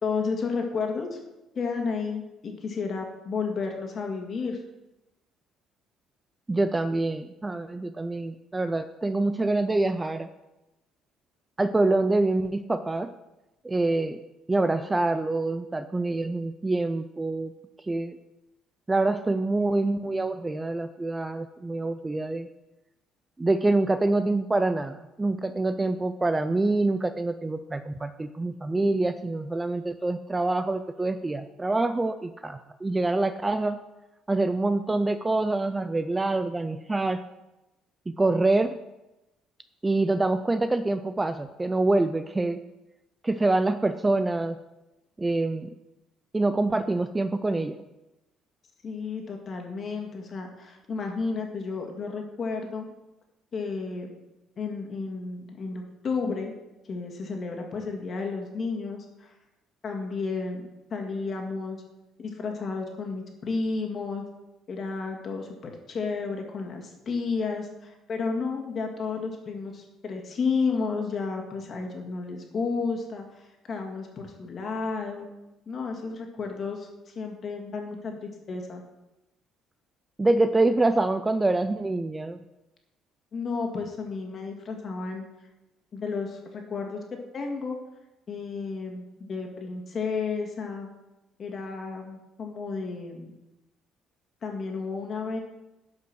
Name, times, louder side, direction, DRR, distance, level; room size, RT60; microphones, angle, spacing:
voice 1, 0.0-1.2 1.5-4.6 48.8-52.9 53.5-54.2 54.6-56.5 56.8-59.3 59.8-61.8 62.2-64.2 64.7-75.3 75.7-78.8 83.3-85.2 85.9-87.0 87.3-87.8 88.3-90.9 91.4-93.3 94.4-95.4, left 4 dB, 40° left, 2 dB, 2.1 m, -32 dB
voice 2, 6.5-10.3 11.6-13.1 13.6-14.2 14.5-17.5 17.9-18.2 18.9-22.5 23.4-33.8 34.3-37.2 38.1-38.8 39.8-42.6 43.2-44.6 45.2-45.7 46.3-47.8 80.2-82.4, right 2 dB, 15° right, 10 dB, 0.4 m, -26 dB
11.5 x 5.6 x 6.1 m, 0.97 s
cardioid pair, 135°, 0 cm